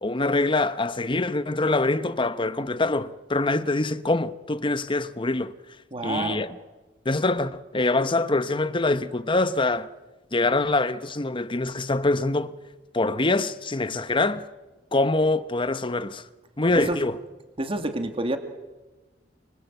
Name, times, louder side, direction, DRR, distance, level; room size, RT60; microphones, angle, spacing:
voice 1, 0.0-5.5 6.0-6.6 7.0-9.9 10.3-12.5 12.9-14.5 14.9-16.2 16.6-17.2, left 2 dB, 30° left, 1.0 m, -24 dB
voice 2, 5.9-6.4 16.7-17.0 17.6-18.4, right 2 dB, 30° right, 2.2 m, -28 dB
29.0 x 25.5 x 8.1 m
head